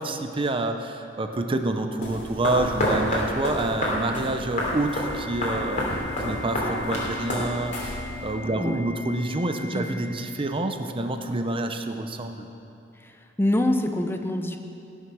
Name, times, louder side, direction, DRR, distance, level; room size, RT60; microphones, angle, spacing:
voice 1, 0.0-5.9 6.2-12.5, right 2 dB, 30° right, 6 dB, 0.6 m, -28 dB
sound 1, 2.0-8.3, left 1 dB, 40° left, 3.1 m, -29 dB
Organ, 4.6-10.6, left 4 dB, 85° left, 1.9 m, -40 dB
voice 2, 13.0-14.6, left 1 dB, 10° left, 5 dB, 0.6 m, -26 dB
15.5 x 7.4 x 6.1 m, 2.6 s
head